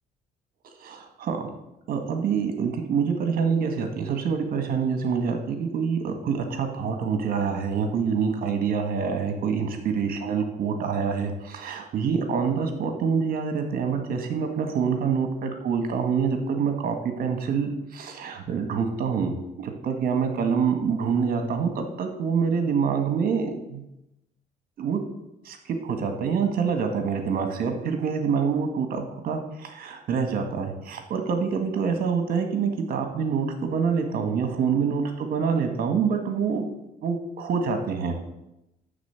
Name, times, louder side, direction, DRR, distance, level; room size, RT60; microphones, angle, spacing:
voice 1, 0.8-1.4 1.9-23.8 24.8-25.0 25.5-25.6 25.8-36.7 37.0-38.2, right 6 dB, 60° right, 5 dB, 1.7 m, -26 dB
12.0 x 4.2 x 8.2 m, 0.89 s
cardioid pair, 110°, 17 cm